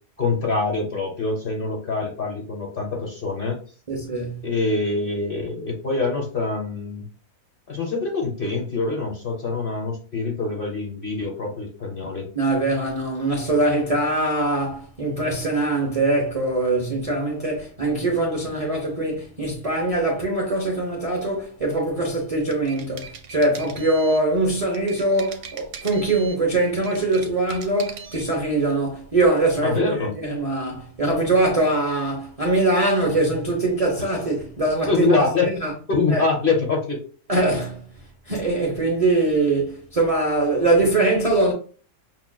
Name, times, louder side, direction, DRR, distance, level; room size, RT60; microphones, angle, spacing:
voice 1, 0.2-3.6 4.4-7.0 7.7-12.3 29.6-30.1 34.9-35.5 35.9-37.0, left 4 dB, 45° left, 0.9 m, -24 dB
voice 2, 3.9-4.4 12.3-35.7 36.1-36.2 37.3-37.9 38.3-41.5, right 2 dB, 40° right, 0.5 m, -22 dB
sound 1, 22.3-24.3 24.7-26.4 26.7-28.3, right 6 dB, 65° right, 1.0 m, -40 dB
5.8 x 2.4 x 2.2 m
omnidirectional pair, 1.6 m